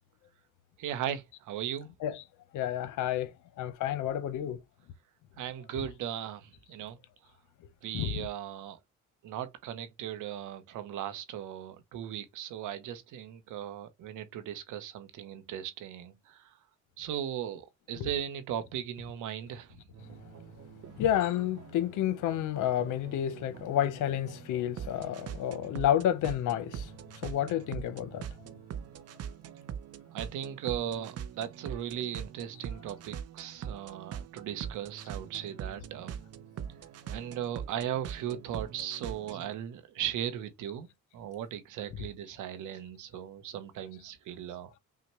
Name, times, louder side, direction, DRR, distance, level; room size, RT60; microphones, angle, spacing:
voice 1, 0.8-1.9 5.4-7.0 7.8-8.8 9.2-16.5 17.0-19.8 30.1-36.2 37.1-40.9 41.1-44.8, right 10 dB, 85° right, 0.9 m, -37 dB
voice 2, 2.5-4.6 7.9-8.3 18.0-18.1 21.0-26.9 27.2-28.2, left 11 dB, 85° left, 0.8 m, -30 dB
sound 1, 19.9-39.5, right 8 dB, 55° right, 0.6 m, -43 dB
5.7 x 2.2 x 3.0 m
cardioid pair, 90°, 30 cm